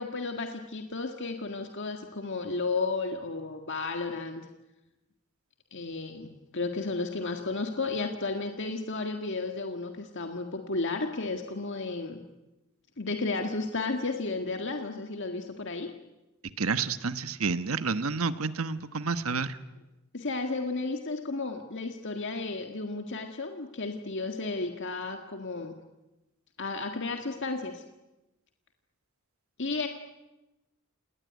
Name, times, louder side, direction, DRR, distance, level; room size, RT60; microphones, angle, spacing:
voice 1, 0.0-4.4 5.7-12.2 13.0-15.9 20.1-25.7 26.6-27.8 29.6-29.9, left 3 dB, 55° left, 4 dB, 1.8 m, -33 dB
voice 2, 16.6-19.6, right 4 dB, 75° right, 11 dB, 1.2 m, -29 dB
28.0 x 19.5 x 9.4 m, 1.0 s
head